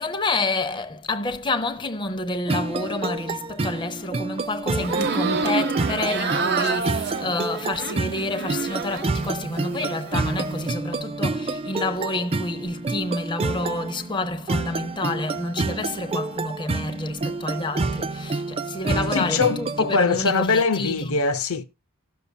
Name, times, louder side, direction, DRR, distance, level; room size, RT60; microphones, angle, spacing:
voice 1, 0.0-21.2, left 2 dB, 20° left, 0.6 m, -29 dB
sound 1, 2.5-19.9, right 3 dB, 25° right, 0.4 m, -29 dB
sound 2, 4.8-9.2 9.5-10.3, right 4 dB, 50° right, 0.9 m, -28 dB
voice 2, 19.1-21.6, left 4 dB, 75° left, 0.7 m, -22 dB
18.0 x 6.8 x 2.2 m
head